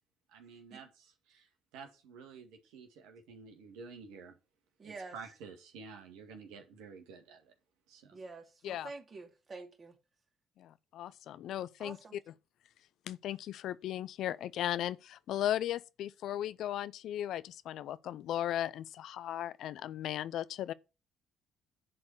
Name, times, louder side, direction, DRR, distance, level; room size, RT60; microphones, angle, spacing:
voice 1, 0.3-4.4 4.8-7.5 7.9-8.2, right 5 dB, 70° right, 2.0 m, -51 dB
voice 2, 4.8-5.1 8.1-9.9 11.8-12.2, right 3 dB, 40° right, 2.6 m, -47 dB
voice 3, 10.6-12.2 13.1-20.7, left 12 dB, 65° left, 0.5 m, -36 dB
11.0 x 4.3 x 7.1 m
hypercardioid pair, 50°, 0 cm